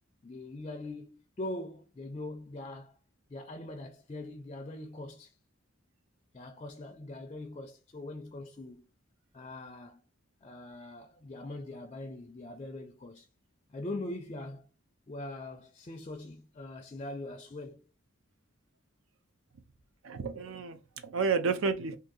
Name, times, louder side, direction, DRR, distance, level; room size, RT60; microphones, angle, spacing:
voice 1, 0.2-3.0 3.3-5.3 6.3-8.8 9.3-10.0 10.4-13.3 13.7-14.7 15.1-17.8, left 2 dB, 30° left, 0.4 m, -42 dB
voice 2, 20.0-22.0, right 5 dB, 80° right, 0.5 m, -31 dB
2.7 x 2.6 x 3.8 m
head